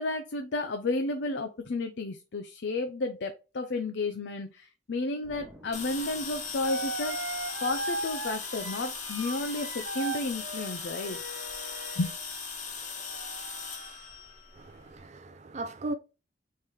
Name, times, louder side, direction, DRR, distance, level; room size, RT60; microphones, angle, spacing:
voice 1, 0.0-7.2 7.6-11.2 12.0-12.1, left 2 dB, 70° left, 0.5 m, -32 dB
Explosion, 5.2-7.9, equal, 5° right, 1.3 m, -54 dB
sound 1, 5.7-15.0, left 5 dB, 45° left, 1.3 m, -38 dB
sound 2, 6.0-6.1 6.6-12.2 13.0-13.9, right 2 dB, 75° right, 1.3 m, -38 dB
voice 2, 14.5-15.9, right 2 dB, 40° right, 0.5 m, -37 dB
4.5 x 3.3 x 3.5 m
head